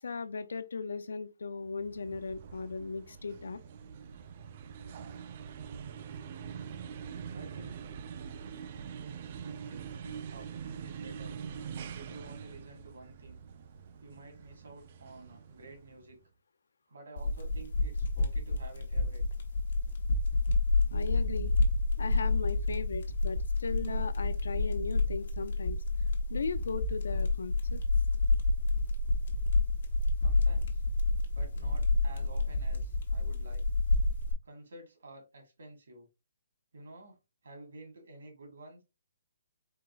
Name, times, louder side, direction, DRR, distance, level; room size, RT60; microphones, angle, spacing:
voice 1, 0.0-3.6 20.9-21.5 22.0-25.8 26.3-27.8, left 4 dB, 80° left, 0.5 m, -37 dB
sound 1, 1.7-16.2, right 7 dB, 35° right, 0.4 m, -44 dB
voice 2, 7.3-7.7 9.4-10.5 10.8-11.4 11.9-13.4 14.0-16.2 16.9-19.2 30.2-30.8 31.3-33.6 34.4-36.1 36.7-37.2 37.4-38.8, right 2 dB, 75° right, 2.2 m, -51 dB
sound 2, 17.2-34.3, left 2 dB, 50° left, 1.1 m, -29 dB
4.6 x 3.9 x 2.3 m
hypercardioid pair, 165°, 0 cm